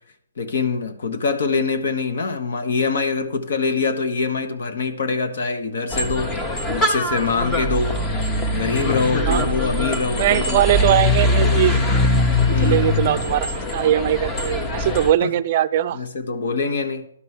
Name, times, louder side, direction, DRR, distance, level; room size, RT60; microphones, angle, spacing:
voice 1, 0.4-6.4 6.7-8.0 8.6-10.6 12.5-12.9 15.2-15.3 15.9-17.1, left 4 dB, 60° left, 1.3 m, -24 dB
sound 1, 5.9-15.1, left 2 dB, 20° left, 1.0 m, -22 dB
voice 2, 9.3-9.6 10.2-11.7 12.5-16.0, right 11 dB, 40° right, 0.4 m, -20 dB
11.5 x 5.4 x 6.4 m
hypercardioid pair, 140°, 0 cm